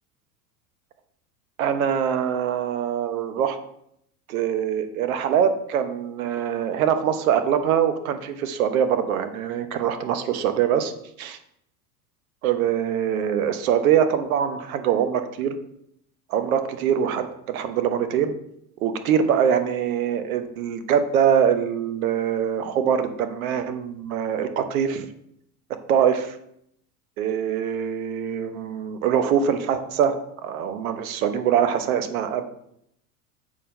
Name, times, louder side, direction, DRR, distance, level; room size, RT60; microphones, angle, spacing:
voice 1, 1.6-3.6 4.3-10.9 11.2-11.4 12.4-15.6 16.3-18.3 18.8-25.1 25.9-26.4 27.2-32.4, right 8 dB, 60° right, 9 dB, 1.1 m, -23 dB
7.3 x 4.4 x 5.4 m, 0.73 s
figure-of-eight pair, 85°, 47 cm